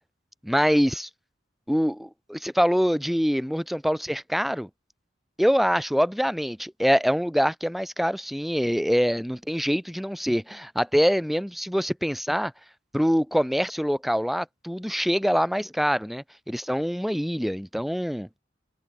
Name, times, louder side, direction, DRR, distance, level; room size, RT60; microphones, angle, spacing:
voice 1, 0.4-1.1 1.7-4.7 5.4-12.5 12.9-18.3, equal, ahead, 5.6 m, -24 dB
head